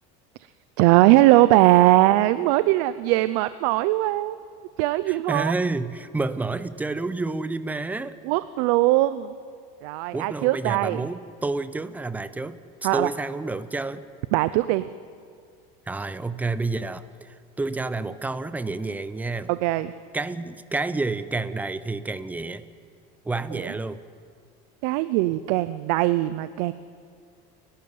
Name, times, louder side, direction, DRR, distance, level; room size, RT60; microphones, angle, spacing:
voice 1, 0.8-4.4 4.8-5.5 8.2-9.3 9.8-11.0 12.8-13.1 14.3-14.8 19.5-19.9 23.5-23.7 24.8-26.7, right 17 dB, 70° right, 14 dB, 0.6 m, -20 dB
voice 2, 5.1-8.2 10.1-12.6 12.9-14.1 15.9-19.5 20.1-22.6 23.2-24.0, right 3 dB, 10° right, 14 dB, 0.7 m, -29 dB
29.0 x 12.5 x 9.5 m, 2.2 s
cardioid pair, 145°, 19 cm